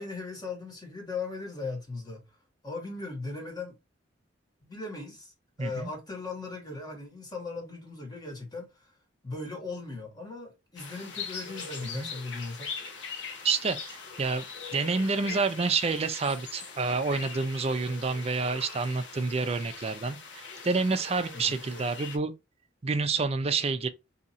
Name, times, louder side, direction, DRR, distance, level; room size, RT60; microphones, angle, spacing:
voice 1, 0.0-2.3 2.6-3.8 4.6-5.3 5.6-8.9 9.2-12.7 21.3-21.6, left 3 dB, 20° left, 1.3 m, -38 dB
voice 2, 5.6-5.9 11.9-12.1 13.4-14.5 14.7-22.3 22.8-23.9, right 4 dB, 35° right, 0.5 m, -28 dB
sound 1, 10.8-22.2, left 5 dB, 80° left, 0.8 m, -41 dB
2.8 x 2.6 x 4.1 m
head